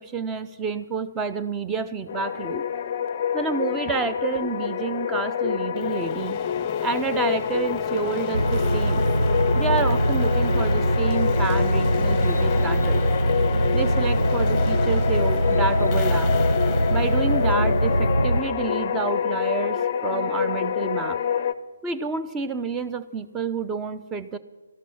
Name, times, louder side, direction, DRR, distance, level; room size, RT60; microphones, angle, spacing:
voice 1, 0.0-2.6 3.3-6.4 6.8-9.0 9.5-13.0 13.7-16.3 16.9-21.2 21.8-24.4, right 5 dB, 10° right, 9 dB, 0.6 m, -29 dB
sound 1, 2.1-21.5, left 8 dB, 35° left, 0.5 m, -27 dB
sound 2, 5.8-18.6, left 6 dB, 15° left, 0.9 m, -39 dB
sound 3, 8.3-18.4, right 1 dB, 85° right, 0.7 m, -22 dB
13.5 x 12.0 x 5.8 m, 1.2 s
figure-of-eight pair, 140°, 0 cm